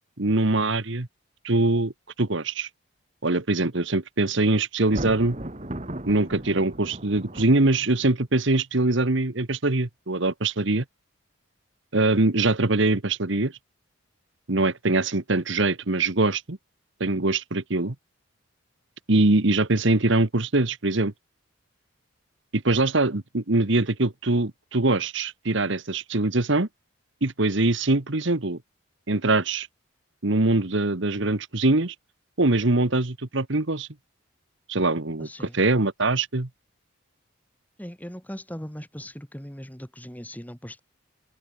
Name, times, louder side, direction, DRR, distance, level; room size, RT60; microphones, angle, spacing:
voice 1, 0.2-1.1 1.4-1.9 2.2-2.7 3.2-5.4 6.1-10.8 11.9-13.5 14.5-16.6 17.0-17.9 19.1-21.1 22.5-26.7 27.2-28.6 29.1-29.7 30.2-31.9 32.4-33.9 34.7-36.5, right 2 dB, 55° right, 1.4 m, -23 dB
Thunder, 4.8-8.1, right 1 dB, 30° right, 1.9 m, -36 dB
voice 2, 35.2-35.6 37.8-40.8, equal, 10° left, 2.6 m, -39 dB
head